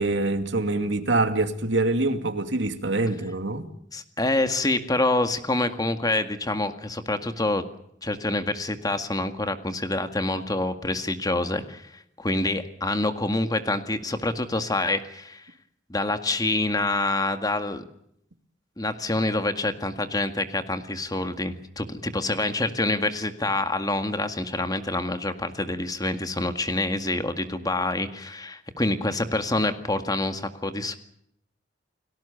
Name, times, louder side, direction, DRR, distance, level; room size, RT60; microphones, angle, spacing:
voice 1, 0.0-3.6, right 2 dB, 70° right, 2.4 m, -25 dB
voice 2, 3.9-7.6 8.0-15.5 15.9-17.8 18.8-31.0, left 2 dB, 20° left, 1.9 m, -26 dB
30.0 x 18.5 x 7.0 m
head